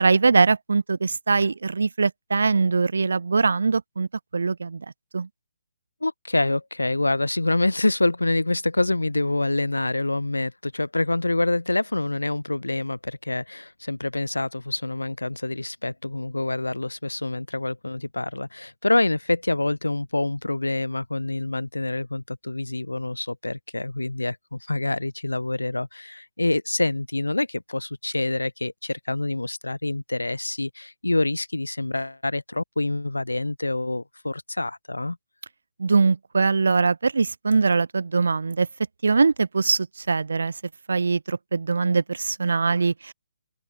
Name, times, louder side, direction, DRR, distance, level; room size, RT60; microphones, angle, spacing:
voice 1, 0.0-4.1 4.3-4.9 5.1-5.3 35.8-38.7 39.0-40.5 40.9-43.1, right 4 dB, 65° right, 0.4 m, -22 dB
voice 2, 6.0-35.2, left 2 dB, 80° left, 0.5 m, -26 dB
open air
figure-of-eight pair, 140°, 0 cm